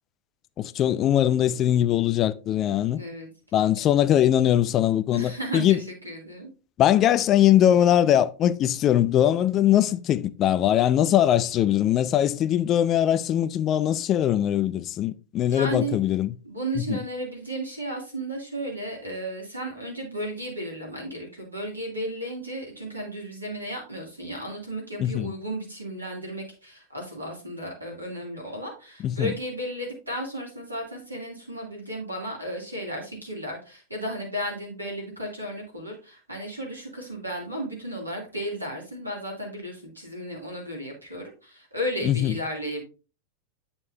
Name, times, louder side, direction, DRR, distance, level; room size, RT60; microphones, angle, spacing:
voice 1, 0.6-3.0 3.5-5.8 6.8-16.3 16.9-17.0 25.0-25.3 29.0-29.3 42.0-42.3, left 11 dB, 30° left, 0.4 m, -21 dB
voice 2, 3.0-3.3 5.1-6.5 15.5-16.0 16.4-42.8, equal, 85° right, 2.7 m, -34 dB
8.5 x 6.9 x 2.7 m
figure-of-eight pair, 90°, 0 cm